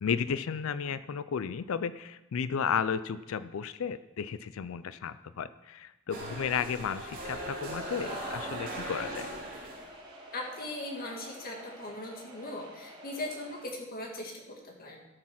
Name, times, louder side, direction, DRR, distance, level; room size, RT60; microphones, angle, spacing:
voice 1, 0.0-9.3, left 7 dB, 70° left, 15 dB, 0.4 m, -33 dB
sound 1, 6.1-9.9, right 1 dB, 45° right, 3.2 m, -39 dB
sound 2, 7.2-13.6, right 1 dB, 25° right, 2.6 m, -50 dB
voice 2, 10.3-15.0, left 1 dB, 45° left, 0 dB, 1.8 m, -39 dB
13.0 x 6.3 x 5.9 m, 0.99 s
head